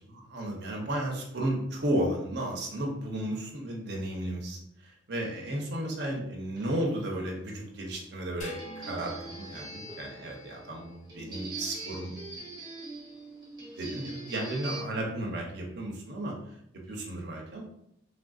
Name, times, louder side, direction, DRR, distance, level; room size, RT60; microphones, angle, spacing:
voice 1, 0.1-12.5 13.8-16.3 16.7-17.6, right 1 dB, 60° right, -1 dB, 0.7 m, -34 dB
sound 1, 6.6-14.8, right 2 dB, 20° right, 0.7 m, -43 dB
sound 2, 8.4-11.0, left 2 dB, 40° left, 0.4 m, -48 dB
3.3 x 2.6 x 2.3 m, 0.74 s
head